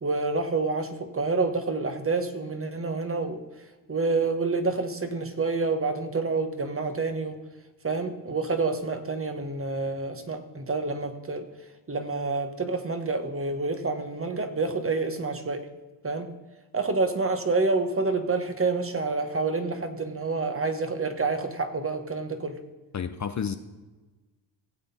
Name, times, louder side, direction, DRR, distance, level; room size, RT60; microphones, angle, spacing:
voice 1, 0.0-3.4 3.9-7.4 7.8-11.5 11.9-15.7 16.0-16.3 16.7-22.6, right 3 dB, 25° right, 7 dB, 1.4 m, -28 dB
voice 2, 22.9-23.6, left 7 dB, 35° left, 9 dB, 0.7 m, -30 dB
16.5 x 7.7 x 4.3 m, 1.2 s
cardioid pair, 80°, 48 cm